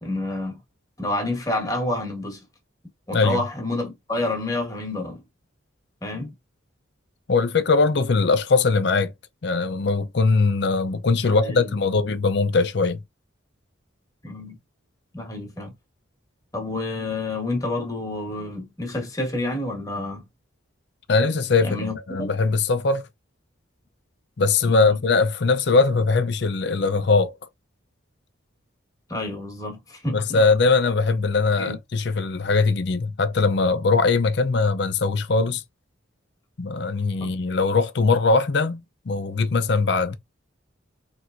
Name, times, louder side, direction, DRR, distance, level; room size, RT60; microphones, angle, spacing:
voice 1, 0.0-0.6 1.0-2.4 3.1-5.2 6.0-6.3 11.2-11.7 14.2-14.6 15.1-15.7 16.5-20.2 21.6-22.3 24.7-25.0 29.1-30.4 31.6-31.8 37.2-37.3, left 2 dB, 15° left, 1.5 m, -29 dB
voice 2, 7.3-9.1 9.4-13.0 21.1-23.1 24.4-27.3 30.1-35.6 36.6-40.2, left 4 dB, 55° left, 0.5 m, -21 dB
4.4 x 3.4 x 2.5 m
head